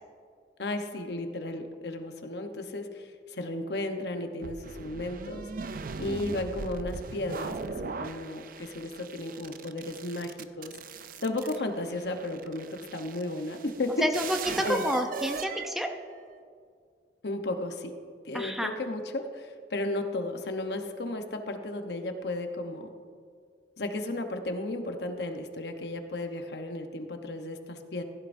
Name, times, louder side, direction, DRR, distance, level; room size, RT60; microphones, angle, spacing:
voice 1, 0.6-5.5 6.0-12.7 12.9-14.1 14.6-14.8 17.2-17.9 18.2-22.9 23.8-28.0, left 2 dB, 65° left, 6 dB, 0.9 m, -34 dB
sound 1, 4.4-16.4, right 5 dB, 50° right, 0.4 m, -40 dB
voice 2, 14.0-15.9 18.3-18.7, equal, ahead, 4 dB, 0.5 m, -29 dB
15.0 x 11.5 x 2.6 m, 2.1 s
head